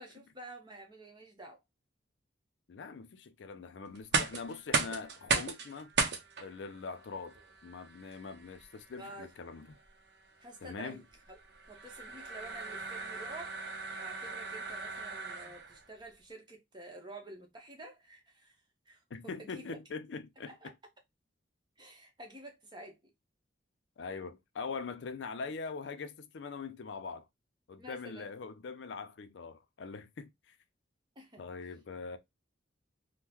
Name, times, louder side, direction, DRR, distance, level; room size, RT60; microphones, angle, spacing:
voice 1, 0.0-1.6 9.0-9.3 10.4-11.0 11.3-11.4 11.7-13.5 14.0-18.5 18.9-19.8 20.5-20.7 21.8-23.0 27.8-28.3 31.2-31.4, right 2 dB, 25° right, 0.9 m, -49 dB
voice 2, 2.7-5.9 6.4-7.4 7.6-9.8 10.6-11.0 19.1-20.5 24.0-27.3 27.7-30.6 31.4-32.2, left 4 dB, 70° left, 0.4 m, -42 dB
sound 1, 3.9-15.8, right 4 dB, 60° right, 0.6 m, -37 dB
3.6 x 2.1 x 2.9 m
head